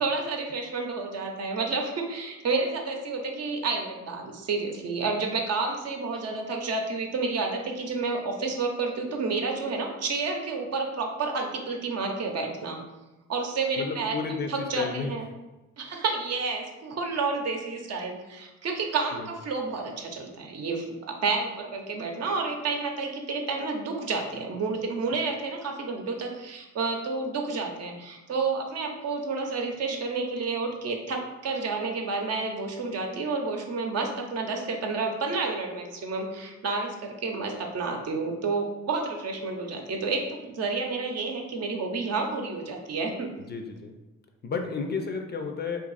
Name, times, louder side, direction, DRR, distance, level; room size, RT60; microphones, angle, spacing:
voice 1, 0.0-12.8 13.3-14.2 14.5-15.2 15.8-43.3, right 4 dB, 55° right, 2 dB, 0.7 m, -30 dB
voice 2, 13.8-15.1 19.2-19.3 43.5-43.9 44.4-45.8, left 5 dB, 35° left, 4 dB, 0.4 m, -32 dB
2.7 x 2.5 x 3.9 m, 1.1 s
cardioid pair, 90°, 30 cm